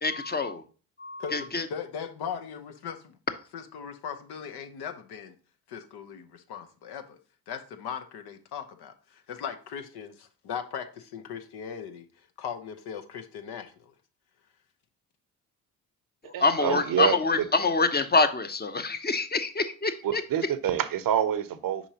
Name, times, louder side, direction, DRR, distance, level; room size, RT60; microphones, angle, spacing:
voice 1, 0.0-0.6 1.0-1.6 16.2-20.2, left 3 dB, 20° left, 0.9 m, -26 dB
voice 2, 1.2-3.2 3.5-5.3 5.7-7.2 7.5-12.1 12.4-13.9, left 7 dB, 60° left, 1.0 m, -38 dB
voice 3, 16.3-17.2 20.0-21.9, right 10 dB, 50° right, 0.8 m, -27 dB
6.9 x 5.0 x 2.8 m
hypercardioid pair, 55°, 43 cm